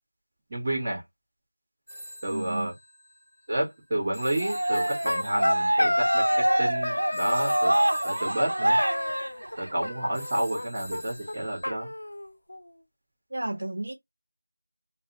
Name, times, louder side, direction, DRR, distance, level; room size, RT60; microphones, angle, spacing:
voice 1, 0.5-1.0 2.2-2.7 3.5-7.8 8.0-8.8 9.6-11.9, right 1 dB, 10° right, 1.9 m, -30 dB
Telephone, 1.9-11.7, equal, 10° left, 1.9 m, -46 dB
voice 2, 2.3-2.7 13.3-13.9, right 1 dB, 45° right, 1.5 m, -32 dB
Cheering, 4.4-9.9, right 1 dB, 75° right, 1.0 m, -26 dB
sound 1, 4.7-6.6 6.8-7.9 8.8-9.6 9.8-10.7 10.9-11.0 11.3-11.4 11.6-12.7, left 1 dB, 55° left, 0.6 m, -29 dB
5.2 x 2.7 x 2.4 m
figure-of-eight pair, 180°, 0 cm